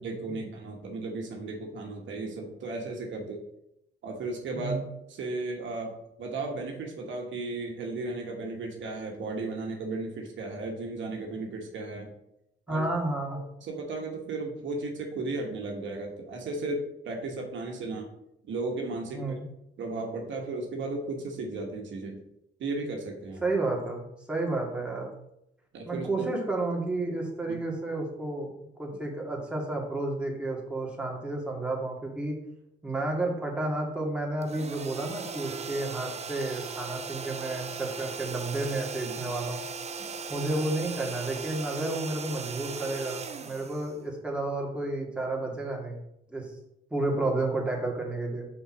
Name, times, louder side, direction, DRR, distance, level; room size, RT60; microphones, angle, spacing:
voice 1, 0.0-3.5 4.0-12.1 12.7-12.9 13.3-18.1 18.5-19.4 19.8-22.2 22.6-23.4 25.7-26.3 27.5-27.6 39.0-39.2 40.0-40.1, right 2 dB, 70° right, 1 dB, 1.5 m, -35 dB
voice 2, 12.7-13.4 19.1-19.4 23.4-25.1 25.9-28.5 28.8-32.3 32.8-39.6 40.3-46.0 46.3-46.5 46.9-48.5, right 2 dB, 5° right, -2 dB, 2.2 m, -31 dB
sound 1, 34.4-44.4, right 5 dB, 35° right, 0.6 m, -38 dB
5.6 x 4.4 x 6.1 m, 0.81 s
cardioid pair, 90°, 20 cm